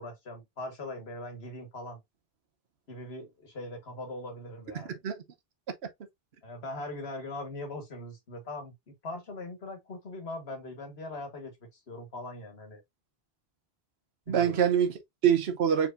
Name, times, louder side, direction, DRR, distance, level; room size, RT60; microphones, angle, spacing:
voice 1, 0.0-2.0 2.9-5.0 6.4-12.8 14.3-14.6, left 2 dB, 85° left, 1.8 m, -41 dB
voice 2, 4.7-5.2 14.3-15.9, right 8 dB, 90° right, 1.1 m, -25 dB
4.5 x 4.2 x 2.6 m
omnidirectional pair, 1.0 m